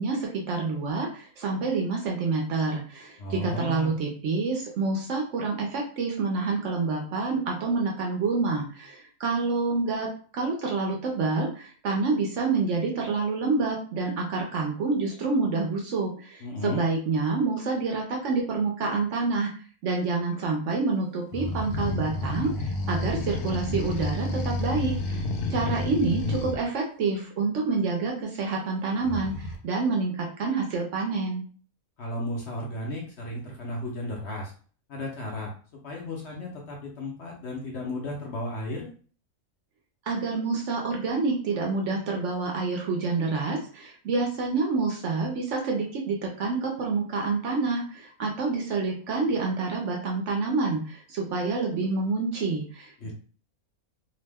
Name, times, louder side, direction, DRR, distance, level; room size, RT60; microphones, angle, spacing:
voice 1, 0.0-10.1 10.3-19.5 19.8-25.2 25.5-31.4 40.1-53.1, right 4 dB, 65° right, 0 dB, 0.8 m, -28 dB
voice 2, 3.2-3.9 16.4-16.8 32.0-34.5 34.9-35.5 35.8-38.9 53.0-53.1, left 1 dB, 60° left, -1 dB, 0.8 m, -34 dB
sound 1, 21.3-26.6 29.0-29.6, left 2 dB, 90° left, 1.1 m, -30 dB
2.7 x 2.1 x 3.3 m, 0.42 s
omnidirectional pair, 1.5 m